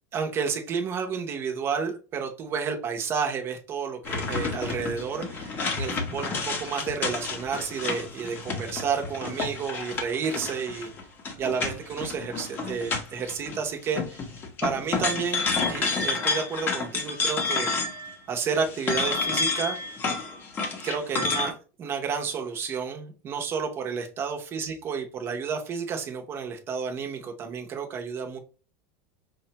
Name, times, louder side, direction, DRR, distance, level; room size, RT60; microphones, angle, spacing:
voice 1, 0.1-10.9 11.4-14.2 14.6-17.7 18.3-19.8 20.8-28.4, right 6 dB, 30° right, 0.7 m, -31 dB
sound 1, 4.0-13.6 13.9-18.2 18.5-21.5, left 4 dB, 25° left, 0.7 m, -30 dB
4.9 x 2.2 x 2.8 m
supercardioid pair, 155°, 8 cm